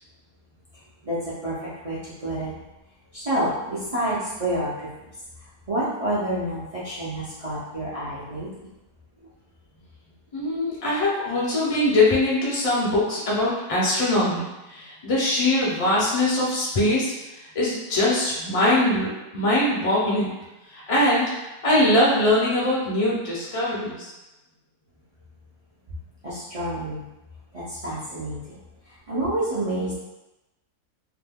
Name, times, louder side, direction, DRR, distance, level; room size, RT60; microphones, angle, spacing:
voice 1, 1.0-2.5 3.1-4.9 5.7-8.7 26.2-27.1 27.5-28.6 28.8-29.9, right 1 dB, 50° right, -10 dB, 0.4 m, -28 dB
voice 2, 10.3-17.1 17.5-20.3 20.7-21.3 21.6-24.1, left 1 dB, 40° left, -6 dB, 0.4 m, -22 dB
2.7 x 2.2 x 3.5 m, 1.0 s
omnidirectional pair, 1.7 m